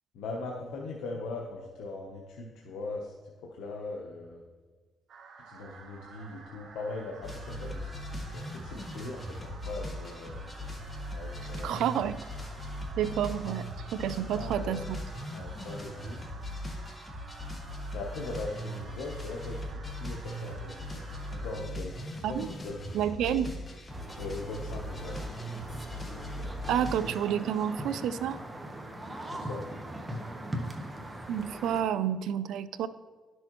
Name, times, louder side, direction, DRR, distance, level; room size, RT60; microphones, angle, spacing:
voice 1, 0.1-3.1 3.5-4.4 5.5-10.5 11.1-11.8 13.9-14.8 15.3-16.3 17.9-19.6 19.9-21.0 21.3-23.0 24.2-25.2 29.3-29.7, left 3 dB, 85° left, -1 dB, 0.8 m, -40 dB
sound 1, 5.1-21.6, right 5 dB, 65° right, 1.0 m, -51 dB
sound 2, 7.2-27.1, left 1 dB, 25° left, 1.2 m, -39 dB
voice 2, 11.6-12.2 13.0-15.0 22.2-22.5 22.9-23.5 26.7-28.4 31.3-32.9, right 9 dB, 85° right, 14 dB, 0.3 m, -30 dB
sound 3, 23.9-31.8, right 1 dB, 20° right, 1.0 m, -40 dB
11.5 x 6.2 x 3.0 m, 1.4 s
cardioid pair, 90°, 0 cm